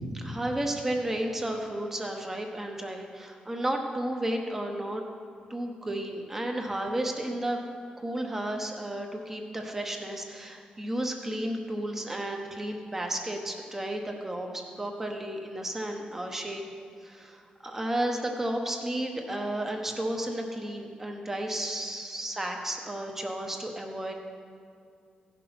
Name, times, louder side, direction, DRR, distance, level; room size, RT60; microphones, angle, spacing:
voice 1, 0.1-5.0 5.5-7.6 8.0-16.6 17.0-24.1, right 1 dB, 15° right, 2 dB, 1.1 m, -33 dB
15.5 x 6.1 x 6.0 m, 2.3 s
wide cardioid pair, 165°, 3 cm